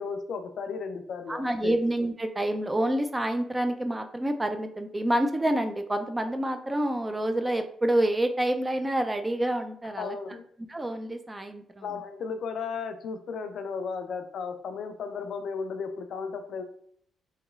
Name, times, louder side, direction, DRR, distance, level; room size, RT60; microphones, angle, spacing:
voice 1, 0.0-1.8 10.0-10.4 11.8-16.6, left 5 dB, 70° left, 8 dB, 0.3 m, -35 dB
voice 2, 1.3-10.1 10.7-11.8, right 1 dB, 20° right, 7 dB, 0.4 m, -28 dB
3.0 x 2.9 x 2.3 m, 0.65 s
cardioid pair, 70°, 0 cm